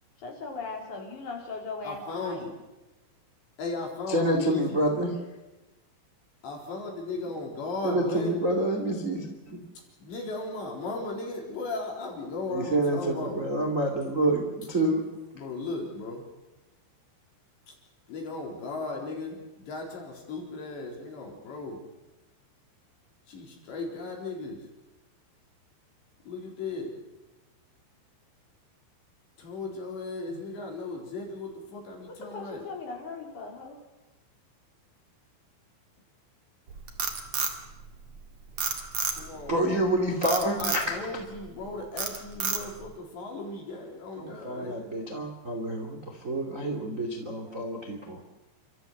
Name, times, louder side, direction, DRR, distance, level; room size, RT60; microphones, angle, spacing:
voice 1, 0.2-2.4 30.3-30.4 32.3-33.8, left 4 dB, 40° left, 0 dB, 5.1 m, -38 dB
voice 2, 1.8-2.5 3.6-4.8 6.4-8.3 10.0-13.4 15.4-16.2 18.1-21.8 23.3-24.6 26.3-26.9 29.4-32.7 39.1-39.5 40.6-44.8, left 3 dB, 60° left, 0 dB, 6.1 m, -36 dB
voice 3, 4.1-5.2 7.8-9.6 12.5-15.0 39.5-40.8 44.1-48.2, right 1 dB, 25° right, 2 dB, 1.8 m, -28 dB
Frog, 36.7-38.2 38.6-39.5 40.2-40.9 41.4-41.6 42.0-42.9, right 5 dB, 45° right, 1.9 m, -30 dB
29.5 x 13.5 x 8.1 m, 1.1 s
omnidirectional pair, 5.7 m